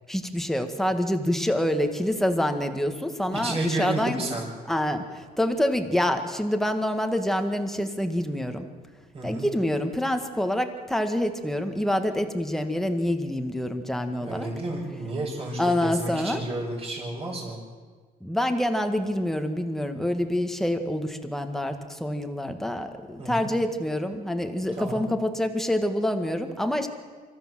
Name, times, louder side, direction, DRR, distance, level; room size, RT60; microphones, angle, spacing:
voice 1, 0.1-4.2 4.7-8.7 9.2-14.5 15.6-16.4 18.2-26.9, left 1 dB, ahead, 6 dB, 1.9 m, -26 dB
voice 2, 3.3-4.4 9.1-9.5 14.2-17.6 23.2-23.5 24.8-25.0, right 2 dB, 35° right, -7 dB, 6.2 m, -31 dB
25.5 x 14.0 x 7.7 m, 1.5 s
cardioid pair, 110°, 17 cm